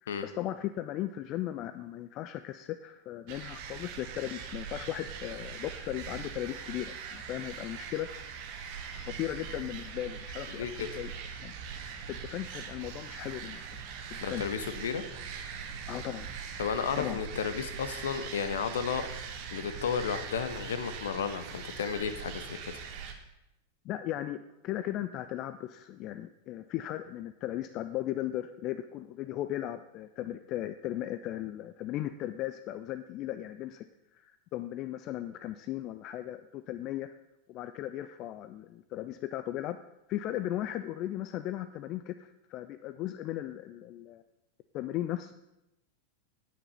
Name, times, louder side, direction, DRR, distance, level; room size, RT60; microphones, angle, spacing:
voice 1, 0.0-8.1 8.9-11.1 11.4-11.5 12.1-13.8 14.3-14.4 15.9-16.3 17.0-17.2 23.8-33.8 34.1-37.1 37.5-39.8 40.1-44.2 44.7-45.3, left 13 dB, 35° left, 11 dB, 0.4 m, -37 dB
sound 1, 3.3-23.1, right 6 dB, 45° right, 1.5 m, -41 dB
voice 2, 10.6-10.9 14.2-15.0 16.6-19.1 19.5-22.7, left 7 dB, 60° left, 10 dB, 1.1 m, -33 dB
9.8 x 9.5 x 5.6 m, 0.90 s
figure-of-eight pair, 90°, 0 cm